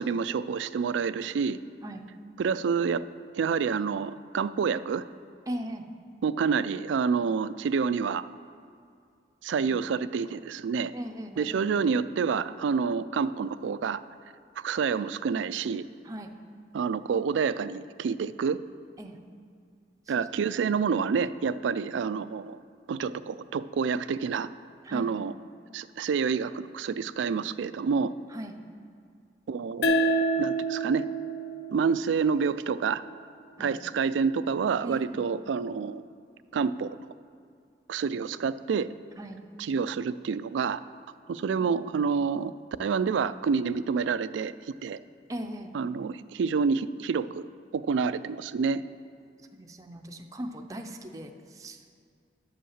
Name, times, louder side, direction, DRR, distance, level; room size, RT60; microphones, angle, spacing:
voice 1, 0.0-1.6 2.4-3.0 3.3-5.0 6.2-8.2 9.4-10.9 11.4-14.0 14.6-15.8 16.7-18.6 20.1-22.6 22.9-24.5 24.9-25.3 25.7-28.1 29.5-31.1 31.7-33.0 33.6-36.0 36.5-36.9 37.9-38.9 39.6-40.8 41.3-42.5 42.8-44.5 44.8-45.0 45.7-47.5 47.7-48.8, right 5 dB, 85° right, 15 dB, 0.3 m, -28 dB
voice 2, 5.5-5.8 9.7-9.8 10.9-11.5 16.0-16.3 19.0-19.2 20.1-20.2 24.8-25.1 28.3-28.5 33.6-33.7 34.8-35.3 39.2-39.4 45.3-45.7 49.6-51.8, equal, 20° right, 4 dB, 0.5 m, -39 dB
sound 1, 29.8-33.0, right 1 dB, 60° left, 0.6 m, -29 dB
10.5 x 5.6 x 7.2 m, 2.3 s
head